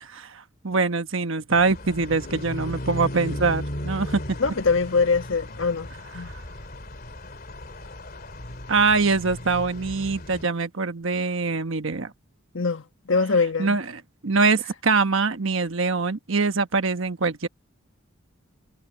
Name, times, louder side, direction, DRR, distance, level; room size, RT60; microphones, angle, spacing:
voice 1, 0.0-4.2 6.2-6.4 8.7-12.1 13.6-17.5, right 4 dB, 65° right, 1.1 m, -24 dB
sound 1, 1.5-10.4, left 1 dB, 45° left, 2.9 m, -36 dB
voice 2, 4.4-5.9 6.1-6.3 12.5-13.8, left 4 dB, 65° left, 1.3 m, -23 dB
head